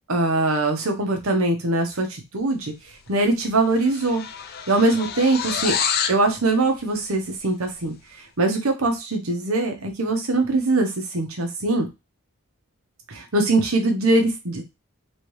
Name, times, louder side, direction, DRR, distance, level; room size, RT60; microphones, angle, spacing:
voice 1, 0.1-2.7 3.1-4.2 4.7-5.8 6.1-7.9 8.4-11.9 13.1-14.6, right 2 dB, 90° right, 4 dB, 1.0 m, -22 dB
sound 1, 3.1-3.3 3.5-6.2, left 7 dB, 45° left, 0.5 m, -28 dB
3.3 x 3.1 x 3.2 m, 0.25 s
head